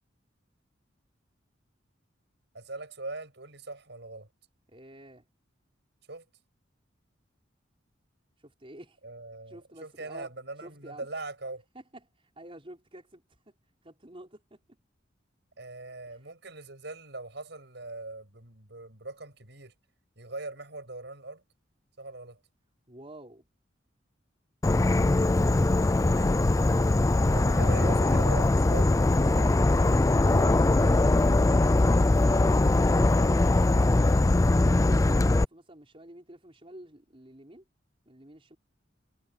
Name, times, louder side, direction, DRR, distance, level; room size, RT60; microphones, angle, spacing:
voice 1, 2.5-4.3 6.1-6.2 9.0-11.6 15.6-19.7 20.2-21.4 22.0-22.4 27.3-28.9, right 2 dB, 65° right, 8.0 m, -41 dB
voice 2, 4.7-5.2 8.4-9.0 9.5-10.3 10.6-11.1 11.7-11.8 12.2-13.2 13.8-14.6 16.1-16.2 22.9-23.4 26.1-27.0 28.7-31.4 32.0-37.6 38.1-38.6, right 1 dB, 30° right, 5.4 m, -47 dB
Insect / Frog, 24.6-35.4, left 2 dB, 15° left, 0.4 m, -22 dB
head